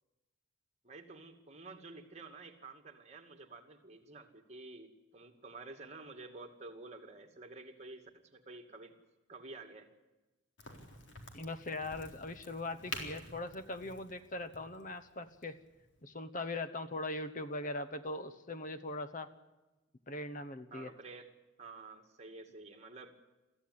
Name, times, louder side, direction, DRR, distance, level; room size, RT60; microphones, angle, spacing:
voice 1, 0.8-8.9 9.3-9.9 20.7-21.3 21.6-23.2, right 3 dB, 35° right, 4 dB, 2.3 m, -50 dB
Crack, 10.6-16.0, left 2 dB, 60° left, 3.9 m, -49 dB
voice 2, 11.3-15.6 16.0-19.3 20.1-20.9, left 2 dB, 40° left, 11 dB, 1.0 m, -40 dB
22.5 x 15.0 x 9.7 m, 1.1 s
head